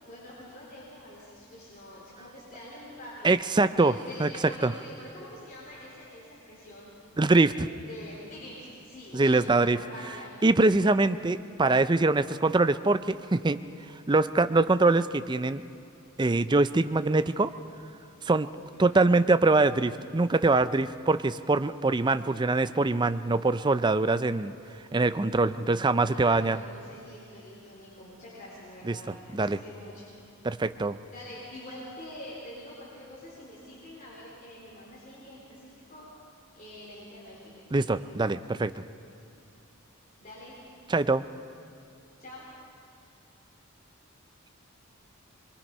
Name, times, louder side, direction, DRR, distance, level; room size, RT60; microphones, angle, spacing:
voice 1, 0.0-3.4 3.8-6.9 7.5-10.4 18.7-19.0 26.1-30.1 31.1-36.1 36.5-38.0 40.2-40.5 42.2-42.5, left 1 dB, 40° left, -7 dB, 4.0 m, -45 dB
voice 2, 3.2-3.9 4.2-4.3 4.6-4.7 7.2-7.7 9.1-9.8 10.4-13.6 14.1-15.6 16.2-17.5 18.2-18.5 18.8-24.5 24.9-26.6 28.8-29.0 29.3-29.6 30.4-31.0 37.7-38.8 40.9-41.2, right 3 dB, 20° right, 12 dB, 0.5 m, -23 dB
23.5 x 23.0 x 5.5 m, 2.6 s
head